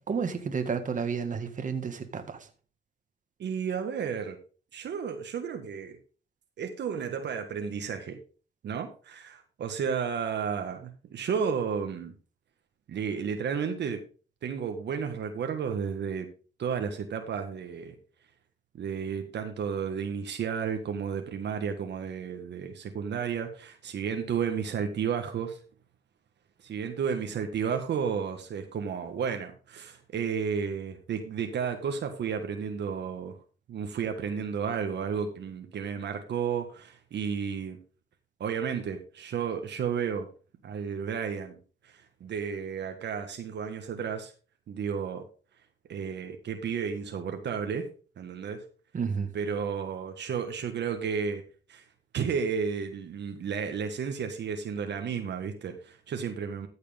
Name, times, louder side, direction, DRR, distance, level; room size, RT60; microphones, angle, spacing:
voice 1, 0.0-2.5 48.9-49.3, right 6 dB, 40° right, 1.8 m, -31 dB
voice 2, 3.4-4.4 4.7-6.0 6.6-8.2 8.6-12.1 12.9-14.0 14.4-16.3 16.6-18.0 18.8-25.6 26.6-33.4 33.7-37.8 38.4-40.3 40.6-41.6 41.8-44.3 44.7-45.2 45.9-47.9 48.2-48.6 49.3-51.4 51.7-51.8 52.1-56.7, right 6 dB, 60° right, 1.6 m, -32 dB
14.0 x 6.6 x 3.6 m
cardioid pair, 90°, 20 cm